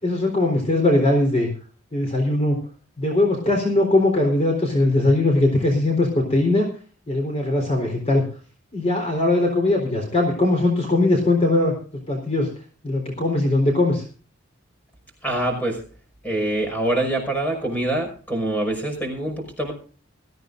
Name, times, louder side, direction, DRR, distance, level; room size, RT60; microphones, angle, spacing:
voice 1, 0.0-1.5 1.9-2.6 3.0-6.7 7.1-8.2 8.7-11.7 12.1-12.5 12.8-14.0, left 2 dB, 30° left, 1 dB, 3.9 m, -20 dB
voice 2, 15.2-15.8 16.2-19.7, right 1 dB, 10° left, 3 dB, 5.6 m, -25 dB
21.5 x 15.0 x 2.6 m, 0.40 s
head